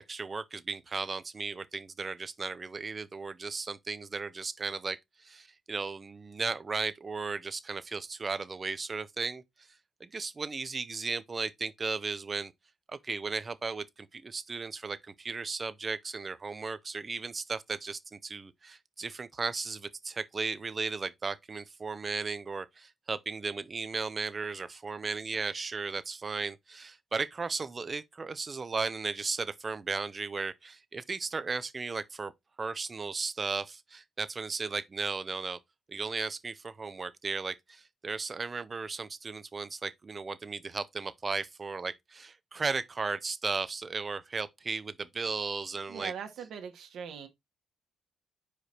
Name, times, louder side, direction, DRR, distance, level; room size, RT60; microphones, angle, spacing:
voice 1, 0.1-9.4 10.0-12.5 12.9-32.3 32.6-35.6 35.9-46.1, right 4 dB, 30° right, 0.7 m, -35 dB
voice 2, 45.9-47.3, right 7 dB, 75° right, 1.4 m, -41 dB
5.0 x 4.8 x 4.3 m
cardioid pair, 95°, 0 cm